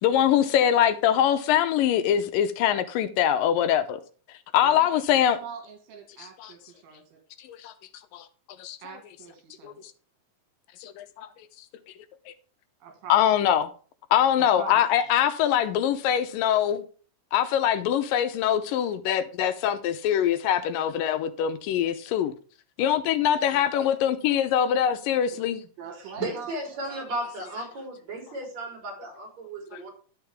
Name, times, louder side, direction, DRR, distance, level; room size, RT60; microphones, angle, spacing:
voice 1, 0.0-4.0 4.5-5.4 6.2-6.5 7.5-7.7 8.1-8.3 8.6-8.8 9.6-9.7 10.8-11.3 13.1-13.7 14.1-16.8 17.3-22.3 22.8-25.6, left 10 dB, 80° left, 2.3 m, -23 dB
voice 2, 4.6-7.0 8.8-9.9 12.8-13.2 14.4-14.8 23.2-23.9 25.3-25.5 25.8-26.5 26.9-27.2, right 6 dB, 80° right, 3.3 m, -43 dB
voice 3, 26.1-29.9, right 2 dB, 50° right, 4.7 m, -35 dB
11.5 x 7.0 x 3.5 m
omnidirectional pair, 4.0 m